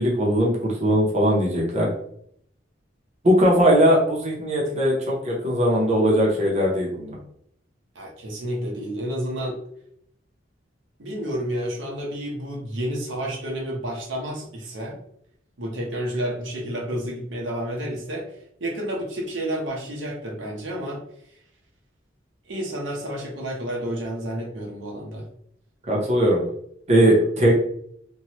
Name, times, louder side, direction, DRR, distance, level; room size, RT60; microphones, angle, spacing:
voice 1, 0.0-1.9 3.2-7.2 25.9-26.4 26.9-27.6, equal, 35° right, -3 dB, 0.7 m, -19 dB
voice 2, 7.9-9.6 11.0-14.9 15.6-18.2 18.6-21.0 22.5-25.2, equal, 90° right, -1 dB, 0.8 m, -30 dB
3.0 x 2.2 x 2.9 m, 0.69 s
head